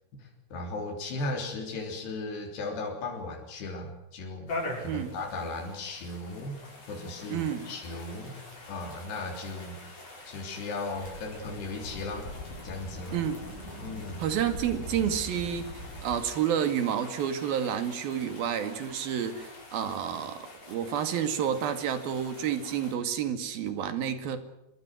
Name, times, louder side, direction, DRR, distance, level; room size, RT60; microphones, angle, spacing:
voice 1, 0.2-4.5 4.8-6.6 6.9-8.4 8.7-10.0 10.3-12.3 12.6-13.2 13.8-14.3, left 2 dB, 90° left, 1 dB, 5.6 m, -36 dB
sound 1, 4.5-23.0, left 2 dB, 40° left, 7.5 m, -45 dB
voice 2, 7.3-7.7 13.1-13.4 14.2-24.4, right 9 dB, 70° right, 9 dB, 3.9 m, -30 dB
sound 2, 11.0-16.2, left 1 dB, 55° left, 8.0 m, -42 dB
25.0 x 23.0 x 6.3 m, 0.89 s
omnidirectional pair, 4.6 m